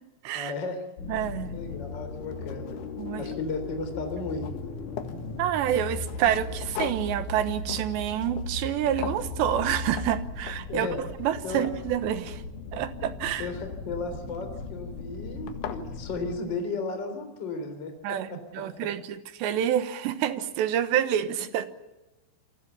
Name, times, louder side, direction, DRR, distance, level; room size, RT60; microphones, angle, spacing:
voice 1, 0.3-0.8 1.5-2.8 3.2-4.7 10.7-11.0 11.4-11.7 13.4-17.9 18.3-18.4 18.8-18.9, left 3 dB, 25° left, 7 dB, 3.7 m, -34 dB
sound 1, 1.0-16.4, left 3 dB, 50° left, 4.0 m, -37 dB
voice 2, 1.1-1.5 3.0-3.3 5.4-12.4 12.7-13.5 18.0-21.7, right 10 dB, 75° right, 11 dB, 3.3 m, -28 dB
sound 2, 1.6-1.7 2.1-3.6 3.9-5.2 5.7-8.7 9.0-9.3 9.9-10.1 10.4-10.8 11.2-12.8 14.3-14.7 15.1-15.2 15.5-15.9, left 10 dB, 85° left, 4.1 m, -40 dB
28.5 x 23.5 x 7.0 m, 1.0 s
omnidirectional pair, 5.3 m